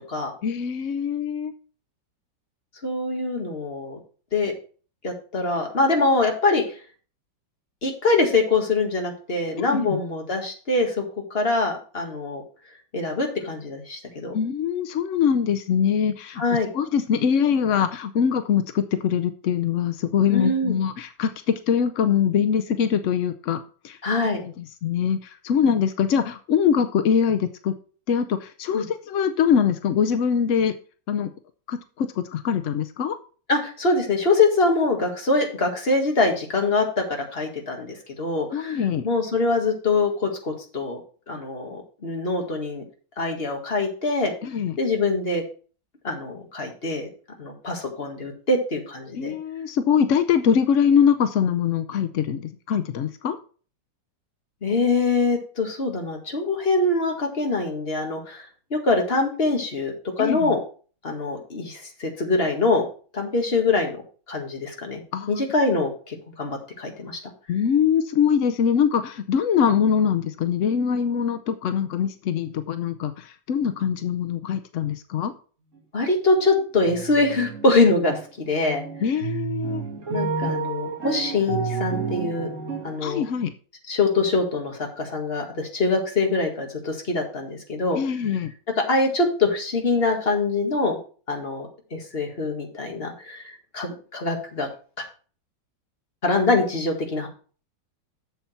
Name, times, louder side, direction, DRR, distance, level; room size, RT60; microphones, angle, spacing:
voice 1, 0.4-1.5 9.6-10.0 14.3-16.4 16.7-23.6 23.8-24.0 24.4-27.7 28.1-30.7 31.1-31.3 31.7-33.2 38.5-39.1 44.4-44.8 49.2-53.4 60.2-60.5 65.1-65.3 67.5-75.3 79.0-79.8 83.0-83.5 87.9-88.5, left 7 dB, 70° left, 9 dB, 0.7 m, -23 dB
voice 2, 2.8-4.0 4.3-4.5 5.0-6.6 7.8-11.0 11.3-12.4 12.9-14.4 16.4-16.7 20.3-20.8 24.0-24.4 28.7-28.9 33.5-41.0 41.3-42.8 43.2-44.3 44.8-45.4 46.0-47.1 47.4-49.4 54.6-58.5 58.7-60.6 61.0-62.9 63.1-64.0 64.3-65.0 65.3-67.2 75.9-78.8 80.1-82.5 82.8-83.2 83.9-88.0 88.8-91.0 91.3-94.7 96.2-97.3, left 3 dB, 30° left, 2 dB, 2.0 m, -24 dB
sound 1, 76.4-76.6 76.8-78.2 78.6-83.1, right 5 dB, 45° right, 1.7 m, -30 dB
8.0 x 7.1 x 4.4 m, 0.39 s
omnidirectional pair, 2.0 m